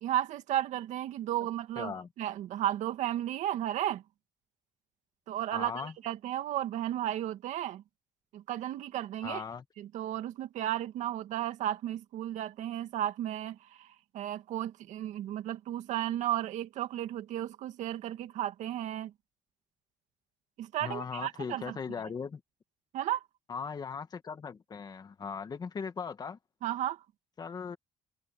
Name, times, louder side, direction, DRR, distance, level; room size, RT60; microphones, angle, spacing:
voice 1, 0.0-4.0 5.3-7.8 8.3-9.4 9.8-13.9 14.1-19.1 20.6-21.8 22.9-23.2 26.6-27.0, right 12 dB, 75° right, 2.2 m, -34 dB
voice 2, 1.8-2.1 5.5-5.9 9.2-9.6 20.8-22.4 23.5-26.4 27.4-27.8, left 6 dB, 35° left, 1.7 m, -38 dB
cardioid pair, 115°, 12 cm